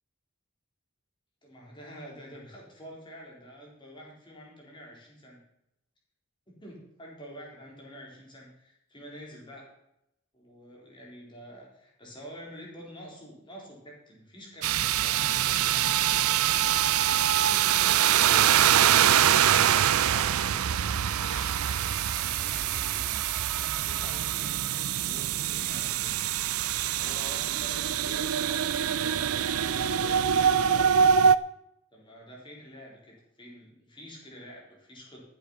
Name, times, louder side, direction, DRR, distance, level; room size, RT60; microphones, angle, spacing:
voice 1, 1.4-5.4 6.5-9.7 10.3-16.4 17.1-18.6 19.5-20.7 21.0-23.2 23.5-26.2 26.9-31.0 31.9-35.2, equal, 20° left, -3 dB, 4.0 m, -47 dB
sound 1, 14.6-31.4, right 9 dB, 75° right, 0.5 m, -24 dB
13.5 x 8.1 x 5.7 m, 0.82 s
head